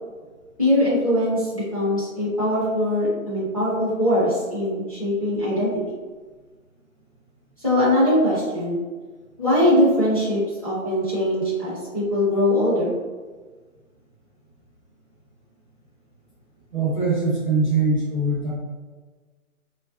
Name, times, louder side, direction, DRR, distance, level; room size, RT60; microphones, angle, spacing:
voice 1, 0.6-6.0 7.6-8.8 9.4-12.9, left 1 dB, 25° left, -11 dB, 0.6 m, -21 dB
voice 2, 16.7-18.5, right 3 dB, 35° right, -8 dB, 0.6 m, -22 dB
3.0 x 2.4 x 2.3 m, 1.4 s
hypercardioid pair, 170°, 44 cm